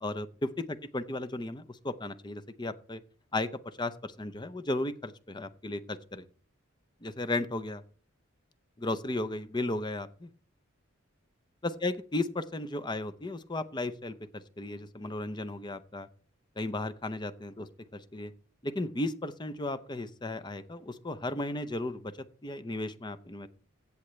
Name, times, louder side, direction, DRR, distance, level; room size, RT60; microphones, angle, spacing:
voice 1, 0.0-3.0 3.3-6.2 7.0-7.8 8.8-10.3 11.8-16.1 16.6-18.3 18.6-22.1 22.4-23.5, left 2 dB, 20° left, 11 dB, 0.6 m, -35 dB
16.5 x 7.2 x 3.2 m, 0.42 s
head